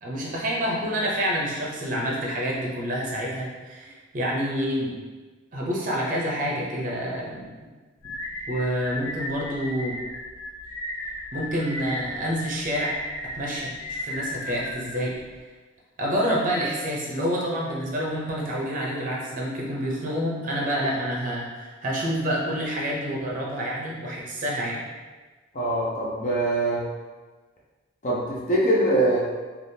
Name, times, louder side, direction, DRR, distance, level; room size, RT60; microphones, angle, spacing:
voice 1, 0.0-5.0 5.5-7.5 8.5-10.0 11.3-13.0 13.3-15.1 16.0-24.8, equal, 40° right, -3 dB, 0.6 m, -28 dB
sound 1, 8.0-15.4, left 1 dB, 80° left, 0.7 m, -35 dB
voice 2, 25.5-26.8 28.0-29.2, right 1 dB, 35° left, -5 dB, 0.5 m, -23 dB
3.4 x 2.4 x 2.7 m, 1.3 s
head